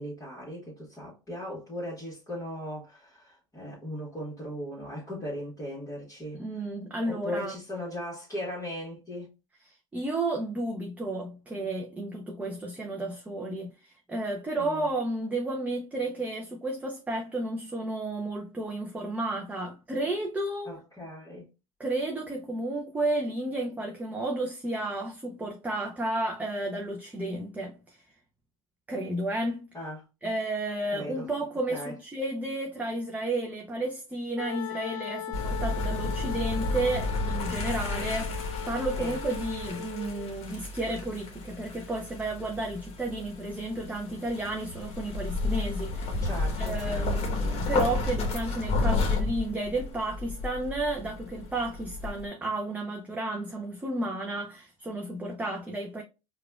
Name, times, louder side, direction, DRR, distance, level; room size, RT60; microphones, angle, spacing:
voice 1, 0.0-6.4 7.0-9.3 14.6-14.9 20.6-21.5 29.7-30.0 30.9-31.3 31.7-31.9 39.0-39.2 46.2-47.3, left 1 dB, 20° left, 1.5 m, -38 dB
voice 2, 6.3-7.5 9.6-20.8 21.8-28.0 28.9-29.7 30.2-46.3 46.6-56.0, right 2 dB, 10° right, 0.5 m, -32 dB
Wind instrument woodwind instrument, 34.4-40.3, left 10 dB, 85° left, 0.5 m, -39 dB
sound 1, 35.3-52.3, left 3 dB, 35° left, 1.1 m, -32 dB
4.7 x 2.3 x 2.3 m
supercardioid pair, 105°, 17 cm